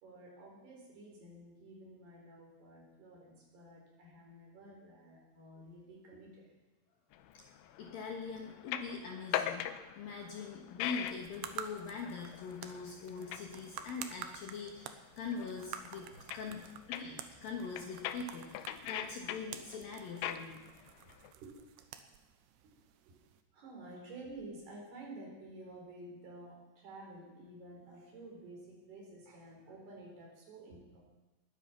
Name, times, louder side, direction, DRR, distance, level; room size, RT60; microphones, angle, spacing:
voice 1, 0.0-6.5 16.1-16.2 21.0-21.6 22.6-22.7 23.0-23.2 23.5-31.0, right 2 dB, 55° right, -1 dB, 5.7 m, -51 dB
sound 1, 7.1-21.3, left 11 dB, 80° left, 2.9 m, -43 dB
voice 2, 7.8-9.7 10.0-20.6, left 5 dB, 65° left, 0 dB, 2.6 m, -43 dB
sound 2, 10.9-23.4, right 9 dB, 75° right, 2.5 m, -50 dB
21.0 x 9.9 x 5.9 m, 1.1 s
omnidirectional pair, 5.6 m